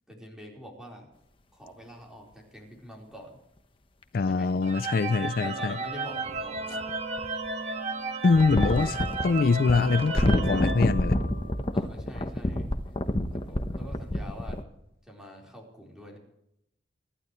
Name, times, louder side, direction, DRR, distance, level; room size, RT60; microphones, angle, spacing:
voice 1, 0.1-1.1 1.5-3.4 4.2-4.5 5.4-6.9 11.7-12.7 13.3-14.7 15.0-16.2, equal, 5° right, 4.3 m, -45 dB
sound 1, 4.0-4.1 6.3-7.5 8.3-14.6, left 1 dB, 30° left, 1.0 m, -28 dB
voice 2, 4.1-5.8 8.2-11.2, left 4 dB, 50° left, 0.4 m, -24 dB
sound 2, 4.6-11.6, right 3 dB, 35° right, 1.6 m, -34 dB
24.5 x 12.0 x 3.2 m
head